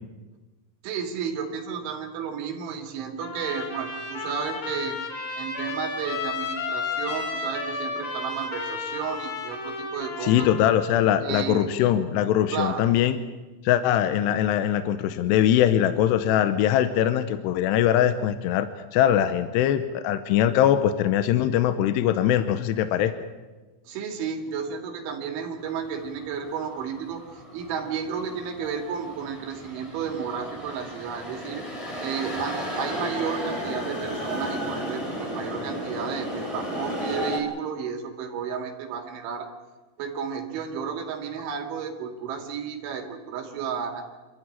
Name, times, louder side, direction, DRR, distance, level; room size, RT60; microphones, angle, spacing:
voice 1, 0.8-5.0 5.4-10.5 11.2-11.7 12.5-12.9 23.9-31.6 32.0-39.5 40.0-44.0, right 7 dB, 75° right, 3 dB, 4.7 m, -32 dB
Trumpet, 3.2-10.8, left 4 dB, 50° left, 5.0 m, -33 dB
voice 2, 10.2-13.2 13.6-23.1, left 11 dB, 75° left, 10 dB, 2.6 m, -22 dB
sound 1, 25.7-37.4, equal, 5° left, 3.6 m, -34 dB
27.0 x 13.5 x 9.8 m, 1.2 s
omnidirectional pair, 5.6 m